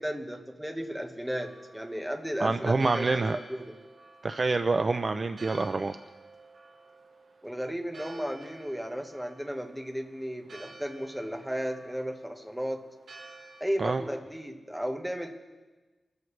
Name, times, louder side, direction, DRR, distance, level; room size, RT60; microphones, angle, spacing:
voice 1, 0.0-3.8 7.4-12.9 13.6-15.3, equal, 5° right, 3 dB, 1.2 m, -34 dB
Church bell, 1.2-13.6, right 3 dB, 80° right, 5.3 m, -52 dB
voice 2, 2.4-3.4 4.2-6.0 13.8-14.0, right 3 dB, 35° right, 9 dB, 0.4 m, -27 dB
25.5 x 13.5 x 3.2 m, 1.2 s
wide cardioid pair, 180°, 0 cm